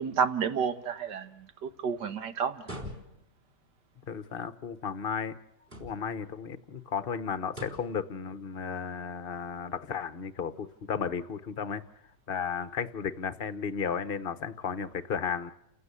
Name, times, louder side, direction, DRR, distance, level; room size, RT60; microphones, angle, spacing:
voice 1, 0.0-2.7, right 6 dB, 65° right, 1.8 m, -30 dB
sound 1, 2.6-3.4 5.6-6.2 7.5-8.0, equal, 30° right, 4.2 m, -43 dB
voice 2, 4.1-5.4 5.8-11.8 12.3-15.5, left 6 dB, 35° left, 1.0 m, -34 dB
29.5 x 15.5 x 8.4 m
omnidirectional pair, 2.0 m